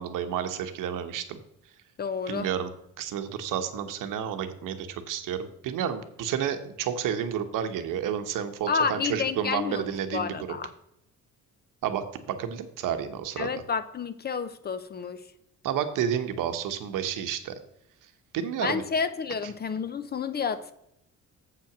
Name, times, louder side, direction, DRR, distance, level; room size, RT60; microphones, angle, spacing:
voice 1, 0.0-1.4 2.3-2.7 3.0-10.3 11.8-13.5 15.6-17.5 18.3-18.8, right 9 dB, 85° right, 9 dB, 1.0 m, -30 dB
voice 2, 2.0-2.5 8.7-9.9 10.1-10.7 13.4-15.2 18.6-20.7, left 5 dB, 30° left, 12 dB, 0.5 m, -30 dB
7.7 x 5.9 x 5.9 m, 0.80 s
cardioid pair, 140°, 31 cm